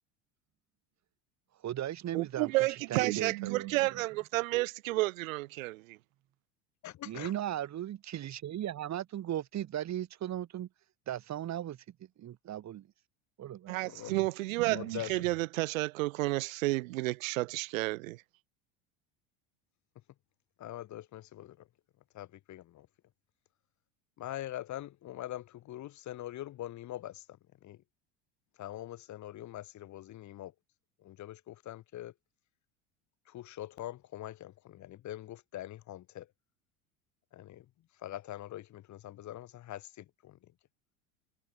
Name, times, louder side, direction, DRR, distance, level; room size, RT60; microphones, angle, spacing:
voice 1, 1.6-4.0 7.0-10.7 11.1-11.8 12.2-12.9 13.4-13.8, right 11 dB, 45° right, 3.5 m, -37 dB
voice 2, 2.1-6.0 13.7-18.2, right 21 dB, 85° right, 0.5 m, -31 dB
voice 3, 6.8-7.3 13.9-14.1 14.7-15.2 20.6-21.6 22.1-22.9 24.2-27.2 27.6-27.8 28.6-30.5 31.0-32.1 33.3-36.3 37.3-37.7 38.0-40.4, left 13 dB, 45° left, 2.2 m, -43 dB
hypercardioid pair, 90°, 39 cm